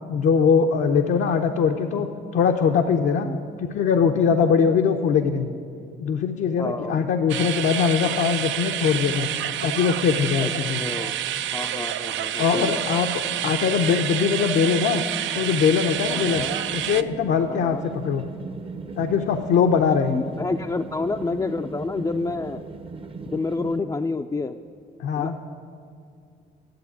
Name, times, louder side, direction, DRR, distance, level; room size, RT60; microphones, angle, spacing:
voice 1, 0.1-3.3 3.7-5.5 6.0-9.3 9.6-10.8 12.4-13.1 13.4-15.0 15.3-16.4 16.7-18.2 19.0-20.2 25.0-25.3, left 6 dB, 75° left, 3 dB, 0.7 m, -21 dB
voice 2, 6.6-7.0 10.4-11.2 11.5-12.8 16.1-16.6 17.5-17.8 20.1-22.6 23.3-24.6 25.2-25.5, left 3 dB, 20° left, 4 dB, 0.4 m, -29 dB
sound 1, 7.3-17.0, right 11 dB, 75° right, 0.4 m, -28 dB
sound 2, 15.9-23.8, right 4 dB, 30° right, 0.6 m, -38 dB
10.5 x 7.5 x 9.6 m, 2.4 s
cardioid pair, 90°, 20 cm